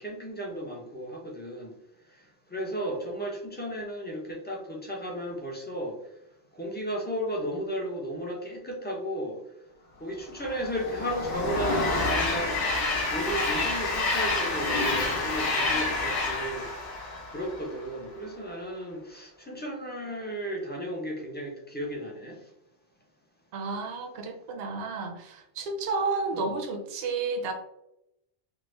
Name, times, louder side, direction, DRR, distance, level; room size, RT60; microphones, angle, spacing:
voice 1, 0.0-1.8 2.5-6.0 6.5-9.4 10.0-12.6 13.1-16.7 17.3-22.4 26.3-26.5, equal, 15° left, -1 dB, 0.4 m, -34 dB
Train, 10.4-17.9, left 3 dB, 80° left, 1.1 m, -28 dB
voice 2, 23.5-27.5, right 3 dB, 65° right, 4 dB, 0.8 m, -31 dB
3.5 x 2.1 x 3.0 m, 0.82 s
omnidirectional pair, 1.2 m